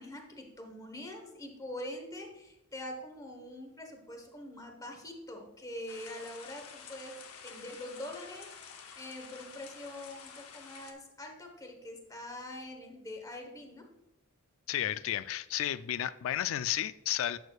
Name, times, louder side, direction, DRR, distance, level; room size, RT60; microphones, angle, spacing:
voice 1, 0.0-8.6 9.0-13.9, left 1 dB, 15° left, 3 dB, 1.1 m, -44 dB
sound 1, 5.9-10.9, left 6 dB, 90° left, 0.8 m, -50 dB
voice 2, 14.7-17.4, left 11 dB, 65° left, 15 dB, 0.3 m, -32 dB
10.5 x 6.6 x 2.4 m, 0.93 s
head